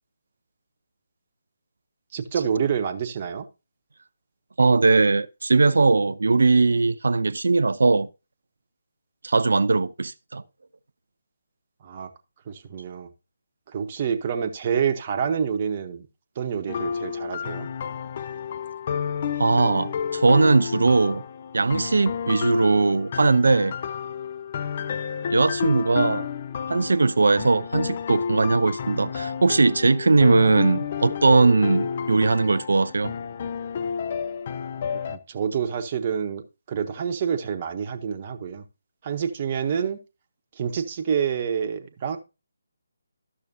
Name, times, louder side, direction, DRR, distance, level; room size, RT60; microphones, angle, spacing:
voice 1, 2.1-3.4 11.8-12.1 12.5-13.1 13.7-16.1 16.4-17.7 27.5-27.6 35.1-38.6 39.0-40.0 40.6-42.2, right 7 dB, 35° right, 0.8 m, -27 dB
voice 2, 4.6-8.1 9.2-10.4 19.4-21.2 21.5-23.7 25.3-26.3 26.7-33.1, right 3 dB, 65° right, 0.4 m, -20 dB
sound 1, 16.7-35.2, left 7 dB, 40° left, 0.4 m, -30 dB
12.0 x 6.4 x 2.7 m
figure-of-eight pair, 150°, 0 cm